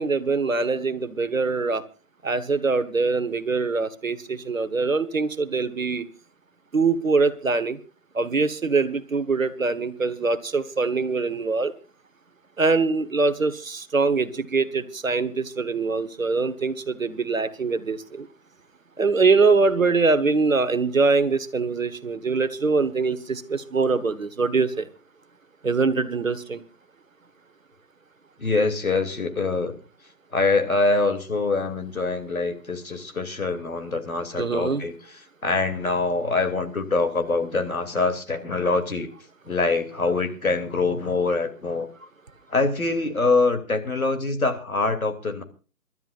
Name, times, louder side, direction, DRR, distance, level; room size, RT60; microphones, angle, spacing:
voice 1, 0.0-1.8 2.2-6.1 6.7-7.8 8.1-11.7 12.6-18.3 19.0-24.9 25.6-26.6 34.4-34.8, right 4 dB, 60° right, 13 dB, 1.4 m, -23 dB
voice 2, 28.4-29.8 30.3-39.1 39.4-41.9 42.5-45.4, left 3 dB, 65° left, 6 dB, 2.9 m, -24 dB
29.0 x 12.5 x 2.5 m, 0.36 s
figure-of-eight pair, 165°, 46 cm